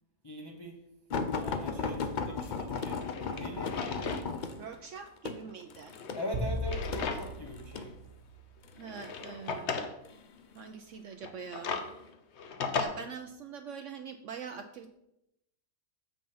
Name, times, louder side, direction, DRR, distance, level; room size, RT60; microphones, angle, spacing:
voice 1, 0.2-0.8 1.3-3.0 3.4-4.2 6.1-7.9, equal, 25° left, 1 dB, 0.6 m, -41 dB
sound 1, 1.1-7.9 8.7-9.1 10.0-10.7 11.4-11.6 12.0-12.1, left 4 dB, 85° left, 0.4 m, -36 dB
Drawer open or close, 2.2-2.3 2.9-4.3 4.6-4.7 5.8-7.5 7.9-8.0 8.8-9.9 11.1-12.8, left 5 dB, 55° left, 1.0 m, -37 dB
voice 2, 4.6-6.0 8.8-9.8 10.6-11.7 12.8-14.9, right 6 dB, 65° right, 7 dB, 0.8 m, -43 dB
sound 2, 6.3-8.8, left 1 dB, 40° right, 1.2 m, -37 dB
7.2 x 5.9 x 5.6 m, 0.85 s
omnidirectional pair, 1.6 m